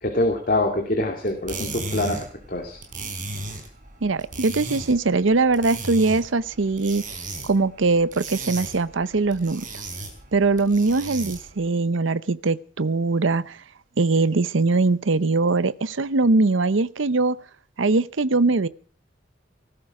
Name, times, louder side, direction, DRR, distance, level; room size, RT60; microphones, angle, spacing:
voice 1, 0.0-2.8, left 1 dB, 45° left, 3 dB, 2.5 m, -25 dB
sound 1, 1.3-11.6, right 3 dB, 45° right, 4.5 m, -36 dB
voice 2, 4.0-7.0 7.4-9.6 10.3-13.6 14.0-17.4 17.8-18.7, right 3 dB, 80° right, 17 dB, 0.7 m, -21 dB
19.0 x 15.5 x 4.8 m, 0.43 s
head